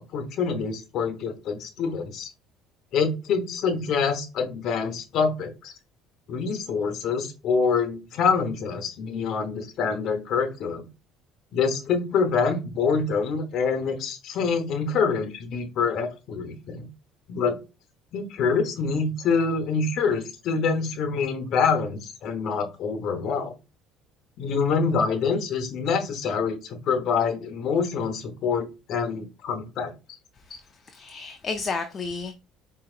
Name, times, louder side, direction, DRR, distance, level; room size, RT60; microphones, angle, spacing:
voice 1, 0.1-2.3 2.9-5.7 6.3-10.9 11.5-16.9 17.3-17.6 18.1-23.5 24.4-29.9, left 5 dB, 55° left, 0.9 m, -26 dB
voice 2, 30.5-32.3, left 4 dB, 30° left, 0.4 m, -32 dB
4.8 x 2.8 x 2.4 m
cardioid pair, 125°, 0 cm